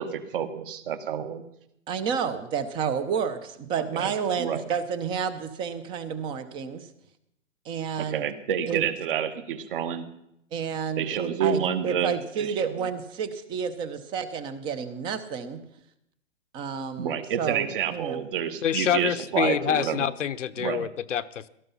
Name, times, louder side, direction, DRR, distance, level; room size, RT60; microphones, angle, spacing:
voice 1, 0.0-1.4 3.9-4.1 4.4-4.6 7.9-10.1 11.0-12.8 17.0-20.1 20.6-20.9, right 8 dB, 45° right, 10 dB, 1.8 m, -29 dB
voice 2, 1.9-6.9 7.6-8.3 8.7-8.8 10.5-15.6 16.5-18.2, right 7 dB, 15° right, 13 dB, 0.7 m, -30 dB
voice 3, 18.6-21.5, left 9 dB, 75° left, 13 dB, 1.0 m, -27 dB
17.5 x 14.0 x 5.6 m, 0.77 s
hypercardioid pair, 155°, 37 cm